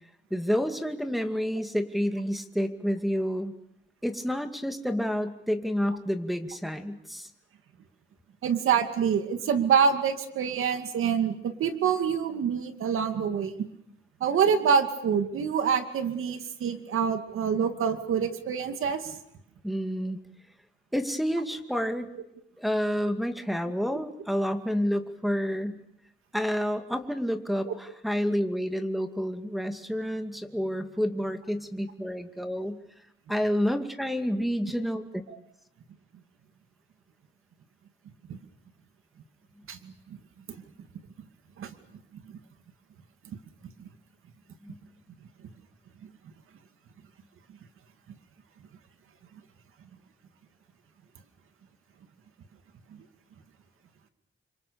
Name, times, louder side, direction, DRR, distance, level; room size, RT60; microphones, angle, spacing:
voice 1, 0.3-3.5 4.0-7.3 19.6-20.2 20.9-22.1 22.6-25.8 26.3-32.8 33.3-35.0 44.6-44.8, equal, ahead, 5 dB, 2.4 m, -29 dB
voice 2, 8.4-13.5 14.2-19.2 27.7-27.8 35.3-35.4 38.3-38.4 39.7-39.9 40.5-40.6 41.6-41.7 43.8-43.9, right 7 dB, 85° right, 7 dB, 2.4 m, -26 dB
30.0 x 25.5 x 7.0 m, 0.75 s
cardioid pair, 120°, 21 cm